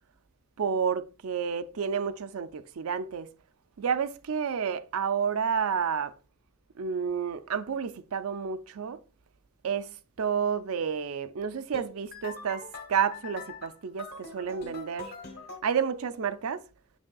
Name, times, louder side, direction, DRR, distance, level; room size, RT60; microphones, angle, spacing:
voice 1, 0.6-3.3 3.8-6.1 6.8-9.0 9.6-15.1 15.6-16.6, right 7 dB, 85° right, 0.5 m, -30 dB
sound 1, 11.7-15.6, left 4 dB, 50° left, 1.3 m, -43 dB
7.4 x 6.2 x 2.3 m
head